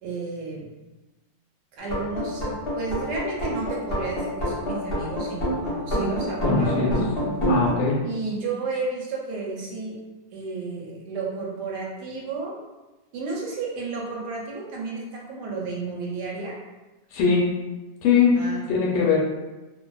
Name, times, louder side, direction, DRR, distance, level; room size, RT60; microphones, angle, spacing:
voice 1, 0.0-0.7 1.8-6.9 8.0-10.0 10.3-12.5 13.1-16.6 18.3-18.7, right 3 dB, 75° right, -3 dB, 1.1 m, -32 dB
sound 1, 1.8-7.8, equal, 40° left, 0.9 m, -26 dB
voice 2, 6.4-7.0 7.5-8.0 17.1-17.4 18.0-18.3 18.7-19.2, left 5 dB, 85° left, -3 dB, 1.3 m, -21 dB
2.6 x 2.5 x 2.2 m, 1.1 s
omnidirectional pair, 2.0 m